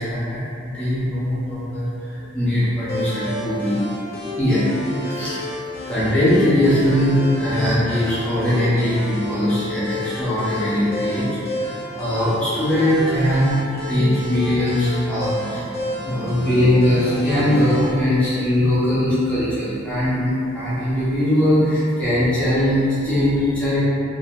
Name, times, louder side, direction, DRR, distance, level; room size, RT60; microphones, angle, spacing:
voice 1, 0.0-3.8 4.4-5.4 5.9-13.6 13.9-23.8, left 1 dB, 5° left, -13 dB, 0.6 m, -20 dB
sound 1, 2.9-17.9, left 1 dB, 50° left, 0.6 m, -31 dB
2.5 x 2.1 x 2.8 m, 2.6 s
head